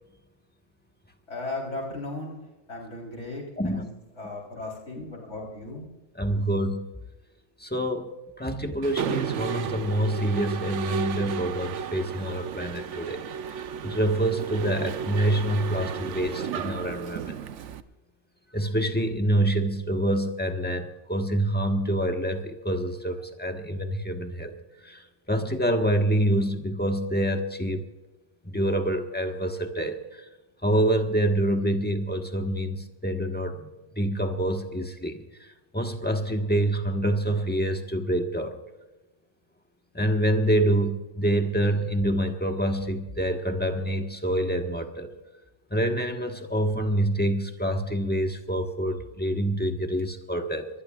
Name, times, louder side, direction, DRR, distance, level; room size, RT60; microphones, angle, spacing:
voice 1, 1.3-2.4 2.7-3.8 4.2-5.9, left 2 dB, 80° left, -1 dB, 4.2 m, -36 dB
voice 2, 6.1-6.9 7.6-8.1 8.4-13.2 13.5-17.4 18.5-24.5 24.8-27.8 28.4-30.2 30.6-33.7 34.0-35.2 35.7-38.6 39.9-45.1 45.7-50.7, right 1 dB, 10° left, 4 dB, 1.3 m, -26 dB
Mechanisms, 8.8-17.8, right 7 dB, 90° right, 1.1 m, -33 dB
23.5 x 19.5 x 2.4 m, 1.1 s
omnidirectional pair, 1.2 m